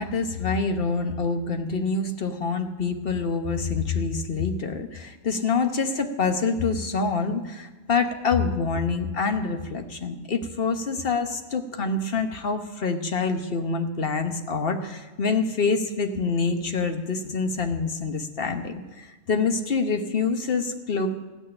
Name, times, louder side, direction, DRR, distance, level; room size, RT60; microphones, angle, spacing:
voice 1, 0.0-21.1, left 4 dB, 55° left, 6 dB, 1.3 m, -26 dB
15.0 x 6.4 x 9.8 m, 1.2 s
omnidirectional pair, 1.2 m